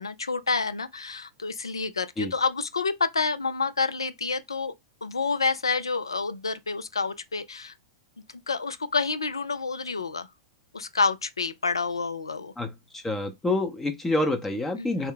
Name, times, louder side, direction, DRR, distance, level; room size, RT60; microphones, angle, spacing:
voice 1, 0.0-4.7 5.0-7.7 8.5-10.3 10.7-12.5 14.8-15.1, left 4 dB, 90° left, 0.4 m, -28 dB
voice 2, 12.6-15.1, left 2 dB, 10° left, 0.6 m, -27 dB
3.5 x 2.1 x 3.7 m
hypercardioid pair, 100°, 2 cm